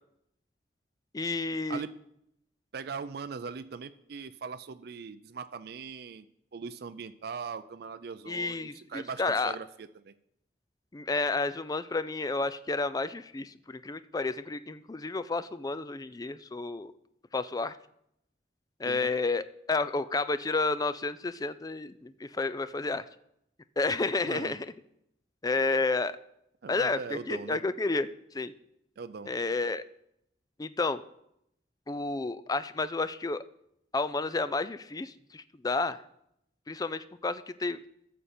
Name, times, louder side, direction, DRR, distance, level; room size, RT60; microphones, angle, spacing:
voice 1, 1.1-1.8 8.3-9.5 10.9-16.9 17.3-17.8 18.8-23.0 23.8-24.7 25.4-26.1 26.7-28.1 28.3-28.5 29.3-29.8 30.6-31.0 31.9-33.4 33.9-36.0 36.7-37.8, left 3 dB, 20° left, 14 dB, 0.4 m, -31 dB
voice 2, 2.7-6.3 6.5-10.1 18.8-19.1 24.3-24.5 26.6-27.6 29.0-29.3, right 5 dB, 65° right, 11 dB, 0.4 m, -40 dB
13.5 x 6.8 x 4.3 m, 0.77 s
head